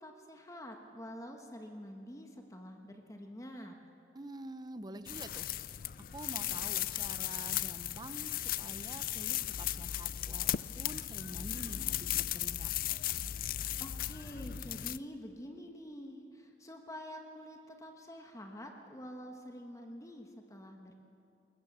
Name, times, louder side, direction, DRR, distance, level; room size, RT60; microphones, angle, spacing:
voice 1, 0.0-3.8 13.8-20.9, equal, 20° left, 3 dB, 1.4 m, -47 dB
voice 2, 4.1-12.7, right 1 dB, 25° right, 12 dB, 0.7 m, -48 dB
sound 1, 5.1-15.0, left 12 dB, 50° left, 0.4 m, -36 dB
21.5 x 19.5 x 7.4 m, 2.6 s
head